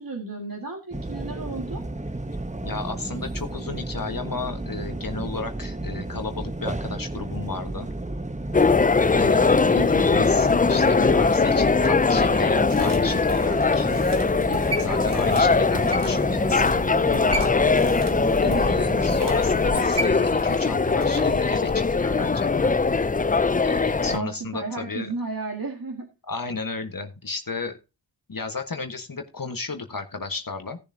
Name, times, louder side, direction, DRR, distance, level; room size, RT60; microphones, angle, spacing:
voice 1, 0.0-1.8 9.7-10.3 18.4-19.0 24.1-26.1, right 3 dB, 55° right, 1 dB, 2.1 m, -33 dB
sound 1, 0.9-19.2, right 2 dB, 15° right, 1.0 m, -33 dB
voice 2, 2.6-7.9 9.1-13.9 14.4-16.9 18.4-22.7 23.6-25.1 26.3-27.8 28.3-30.8, left 4 dB, 50° left, 5 dB, 1.5 m, -33 dB
sound 2, 8.5-24.2, left 4 dB, 20° left, 0.4 m, -21 dB
sound 3, 12.0-21.4 21.7-21.8, right 2 dB, 70° right, 2.4 m, -37 dB
17.5 x 7.2 x 2.8 m, 0.28 s
wide cardioid pair, 45°, 42 cm